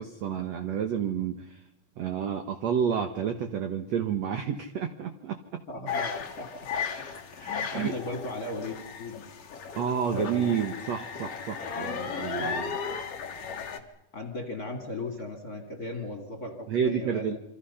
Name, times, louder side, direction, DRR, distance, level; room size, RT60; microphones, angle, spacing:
voice 1, 0.0-1.6 2.0-5.6 7.7-7.9 9.7-12.8 16.7-17.4, right 7 dB, 75° right, 6 dB, 1.5 m, -30 dB
voice 2, 5.7-9.3 9.6-9.7 10.1-10.5 12.4-12.8 13.7-17.4, left 2 dB, 25° left, 4 dB, 2.5 m, -38 dB
sound 1, 5.9-13.8, left 6 dB, 50° left, 2.0 m, -35 dB
28.5 x 25.0 x 5.7 m, 0.79 s
omnidirectional pair, 4.9 m